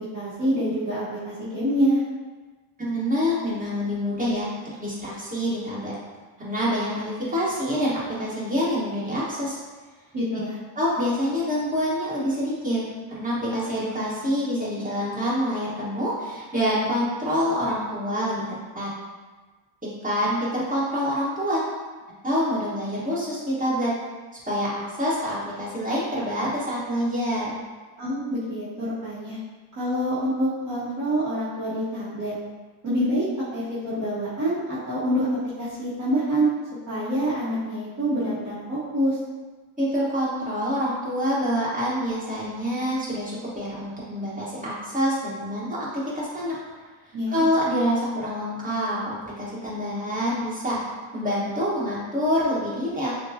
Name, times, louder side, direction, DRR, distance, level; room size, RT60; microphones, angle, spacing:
voice 1, 0.1-2.0 10.1-10.6 28.0-29.4 29.8-32.3 32.8-33.2 33.5-35.3 35.6-36.5 36.9-39.2 47.1-47.4, equal, 40° right, -10 dB, 1.0 m, -26 dB
voice 2, 2.8-4.5 4.8-5.9 6.4-7.9 8.2-9.6 10.7-12.8 13.1-18.5 18.7-18.9 20.0-21.6 22.2-23.9 24.5-24.7 25.0-27.5 39.8-45.7 45.9-46.5 47.3-49.0 49.2-50.8 51.1-53.1, equal, 15° right, -8 dB, 1.3 m, -26 dB
6.3 x 2.3 x 2.7 m, 1.3 s
cardioid pair, 135°, 50 cm